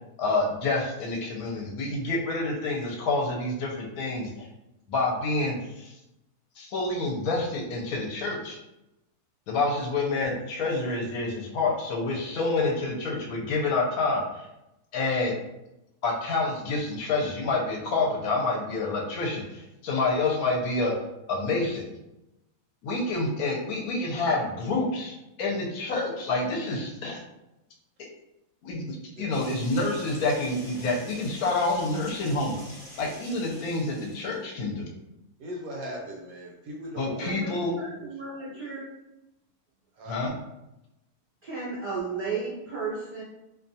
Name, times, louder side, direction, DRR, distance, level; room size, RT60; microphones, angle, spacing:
voice 1, 0.2-4.5 4.9-6.0 6.6-8.6 9.5-14.5 14.9-15.3 16.0-20.9 21.3-21.8 22.8-27.2 28.6-32.6 33.0-34.9 37.0-37.7 40.1-40.3, left 3 dB, 70° left, -1 dB, 1.0 m, -28 dB
sound 1, 29.3-34.4, equal, 35° left, 0.7 m, -47 dB
voice 2, 35.4-38.1 40.0-40.2, equal, 70° right, 0 dB, 1.0 m, -40 dB
voice 3, 37.1-38.9 41.4-43.2, right 4 dB, 50° right, -8 dB, 0.6 m, -34 dB
2.6 x 2.2 x 2.6 m, 0.92 s
omnidirectional pair, 1.7 m